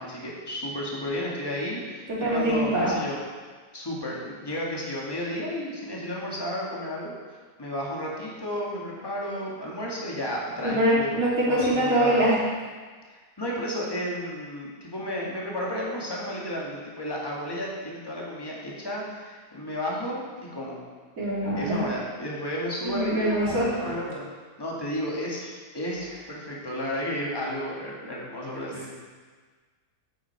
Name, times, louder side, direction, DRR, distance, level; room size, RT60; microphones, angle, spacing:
voice 1, 0.0-3.2 3.7-7.1 7.6-12.4 13.1-20.8 21.5-24.3 24.6-29.0, equal, 15° left, -4 dB, 1.9 m, -32 dB
voice 2, 2.1-2.9 10.6-12.4 21.2-21.8 22.8-23.9, right 1 dB, 65° right, -8 dB, 3.6 m, -24 dB
9.6 x 8.5 x 4.6 m, 1.5 s
omnidirectional pair, 1.6 m